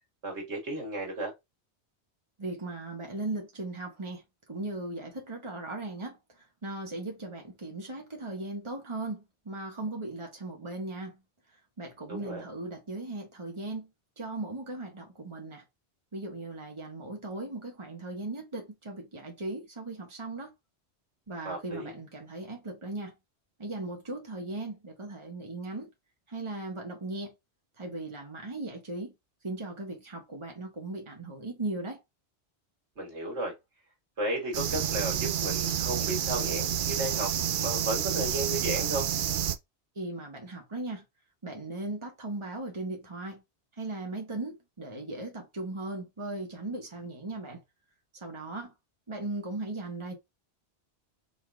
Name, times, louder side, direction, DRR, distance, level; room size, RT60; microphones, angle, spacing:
voice 1, 0.2-1.3 12.1-12.5 21.4-21.9 33.0-33.5 34.2-37.3 37.6-39.1, right 1 dB, 80° right, 2.2 m, -34 dB
voice 2, 2.4-4.2 4.5-6.2 6.6-11.1 11.8-13.9 14.2-15.6 16.1-20.5 21.3-23.1 23.6-25.9 26.3-27.3 27.8-29.1 29.4-32.0 39.9-41.0 41.4-43.4 43.8-47.6 48.1-48.7 49.1-50.1, right 2 dB, 25° right, 1.5 m, -38 dB
sound 1, 34.5-39.6, right 10 dB, 60° right, 0.6 m, -29 dB
4.4 x 4.1 x 2.4 m
omnidirectional pair, 1.1 m